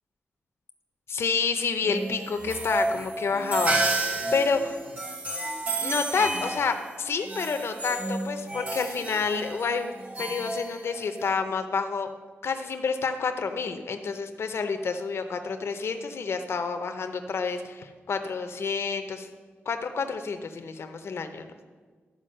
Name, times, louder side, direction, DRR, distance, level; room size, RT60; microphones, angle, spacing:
voice 1, 1.1-4.1 4.3-4.8 5.8-9.9 10.2-12.1 12.4-19.3 19.7-21.5, left 5 dB, 65° left, 7 dB, 0.7 m, -29 dB
sound 1, 1.8-11.3, right 2 dB, 35° right, 1.4 m, -31 dB
11.5 x 4.8 x 6.5 m, 1.4 s
wide cardioid pair, 150°, 5 cm